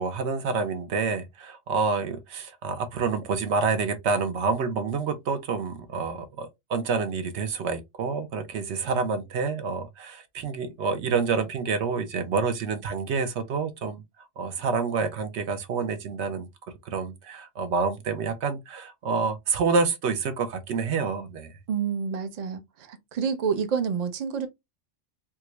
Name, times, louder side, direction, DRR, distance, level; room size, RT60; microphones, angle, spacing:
voice 1, 0.0-14.0 14.4-16.5 16.8-21.6, right 5 dB, 70° right, 0.8 m, -28 dB
voice 2, 21.7-24.5, right 6 dB, 45° right, 0.6 m, -28 dB
3.6 x 2.3 x 2.9 m
omnidirectional pair, 1.3 m